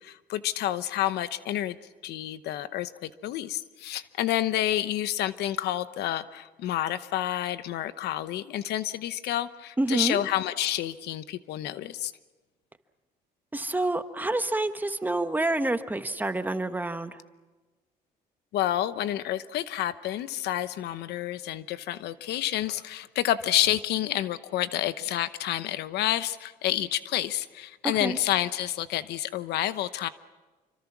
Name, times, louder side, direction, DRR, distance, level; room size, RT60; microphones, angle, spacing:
voice 1, 0.0-1.8 2.0-12.1 18.5-30.1, left 13 dB, 75° left, 14 dB, 0.9 m, -29 dB
voice 2, 9.8-10.2 13.5-17.2 28.0-28.2, right 2 dB, 10° right, 9 dB, 1.2 m, -28 dB
27.0 x 25.0 x 6.1 m, 1.2 s
cardioid pair, 110°, 17 cm